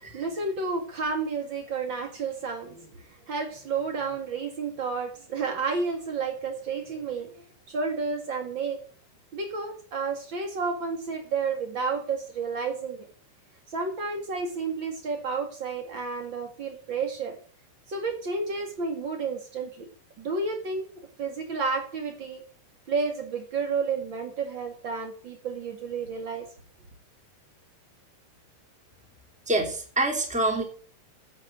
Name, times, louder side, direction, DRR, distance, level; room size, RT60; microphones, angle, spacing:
voice 1, 0.0-8.8 9.3-13.1 13.7-17.4 17.9-19.9 20.2-20.9 21.2-22.4 22.9-26.5, right 4 dB, 85° right, 4 dB, 1.0 m, -31 dB
voice 2, 29.5-30.6, right 2 dB, 5° right, 3 dB, 1.3 m, -25 dB
9.9 x 8.1 x 7.8 m, 0.42 s
omnidirectional pair, 5.5 m